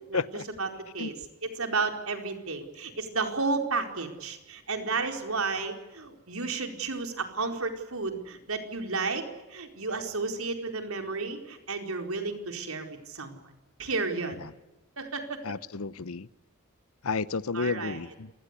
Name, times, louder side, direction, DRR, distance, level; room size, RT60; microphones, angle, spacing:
voice 1, 0.1-0.4 1.0-1.1 14.4-14.5 15.4-16.3 17.0-18.3, left 4 dB, 85° left, 17 dB, 0.8 m, -31 dB
voice 2, 1.4-9.2 9.5-13.4 13.8-14.4 15.0-15.4 17.5-18.0, right 4 dB, 80° right, 4 dB, 4.6 m, -32 dB
28.5 x 20.0 x 8.4 m, 1.0 s
head